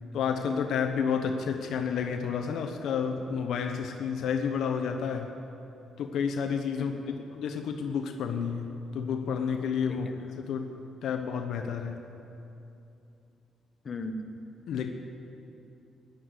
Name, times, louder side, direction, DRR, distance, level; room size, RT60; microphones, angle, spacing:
voice 1, 0.1-5.3 6.0-6.9 7.3-10.1 10.4-10.7 11.0-12.0 14.7-14.9, left 6 dB, 75° left, 5 dB, 1.0 m, -30 dB
voice 2, 6.7-7.2 9.9-10.1 13.8-14.3, left 2 dB, 40° left, 6 dB, 1.1 m, -38 dB
14.0 x 10.0 x 8.2 m, 2.7 s
cardioid pair, 90°, 0 cm